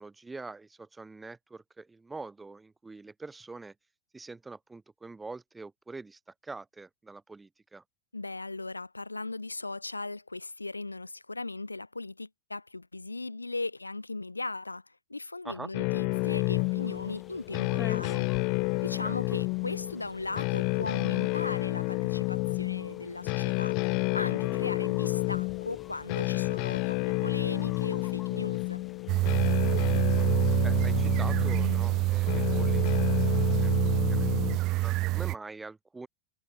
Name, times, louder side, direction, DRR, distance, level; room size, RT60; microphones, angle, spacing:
voice 1, 0.0-3.7 4.1-7.8 15.4-15.7 19.0-19.1 24.5-24.7 29.8-30.3 30.6-33.7 34.1-36.1, right 3 dB, 10° right, 3.8 m, -45 dB
voice 2, 8.1-18.3 18.8-23.7 24.1-28.8, left 3 dB, 80° left, 4.3 m, -38 dB
sound 1, 15.7-34.6, left 32 dB, 45° left, 0.6 m, -30 dB
sound 2, 16.1-33.8, left 8 dB, 20° left, 6.4 m, -52 dB
sound 3, 29.1-35.3, right 19 dB, 40° right, 0.4 m, -26 dB
figure-of-eight pair, 90°, 0 cm